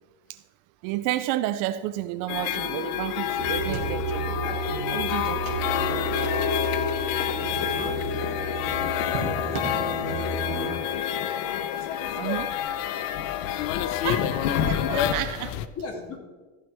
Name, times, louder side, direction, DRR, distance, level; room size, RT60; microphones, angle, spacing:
voice 1, 0.8-4.2 4.9-5.4 12.2-12.5 14.0-15.6, right 14 dB, 50° right, 0.5 m, -31 dB
sound 1, 2.3-15.7, left 10 dB, 70° left, 0.8 m, -28 dB
sound 2, 3.4-10.7, right 4 dB, 30° right, 2.2 m, -32 dB
sound 3, 3.7-4.2 4.5-4.6 5.0-6.2 7.3-8.1 9.1-9.9, right 5 dB, 90° right, 2.1 m, -37 dB
voice 2, 5.4-6.4 6.9-11.0 12.0-13.3 13.6-14.2 14.6-14.9 15.8-16.2, left 3 dB, 35° left, 2.3 m, -43 dB
14.5 x 8.2 x 3.5 m
supercardioid pair, 130°, 40 cm